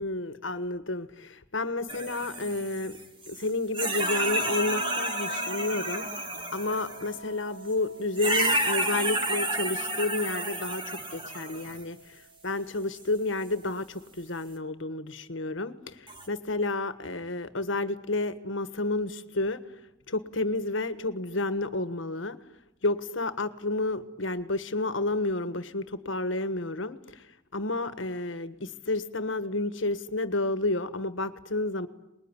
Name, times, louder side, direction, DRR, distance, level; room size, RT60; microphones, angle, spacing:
voice 1, 0.0-3.0 3.3-19.6 20.1-22.4 22.8-27.3 27.5-31.9, left 2 dB, 80° left, 12 dB, 1.5 m, -31 dB
sound 1, 1.9-3.5 3.7-7.1 8.2-11.8 13.0-13.1 16.1-16.3, right 1 dB, 25° right, 2.0 m, -31 dB
sound 2, 4.0-8.5 8.9-10.5 12.0-12.2, left 1 dB, 60° right, 1.5 m, -42 dB
25.5 x 21.0 x 9.9 m, 0.89 s
head